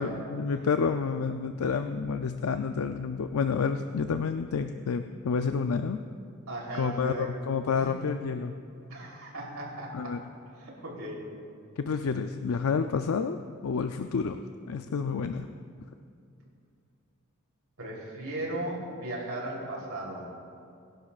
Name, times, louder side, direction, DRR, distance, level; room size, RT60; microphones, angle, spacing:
voice 1, 0.0-6.0 6.7-8.6 9.9-10.2 11.8-13.4 13.6-14.4 14.7-15.5, left 5 dB, 75° left, 8 dB, 0.4 m, -29 dB
voice 2, 6.5-7.3 7.8-7.9 8.9-10.1 10.6-11.2 17.8-20.3, right 1 dB, 80° right, -3 dB, 3.3 m, -36 dB
23.0 x 11.0 x 2.4 m, 2.5 s
head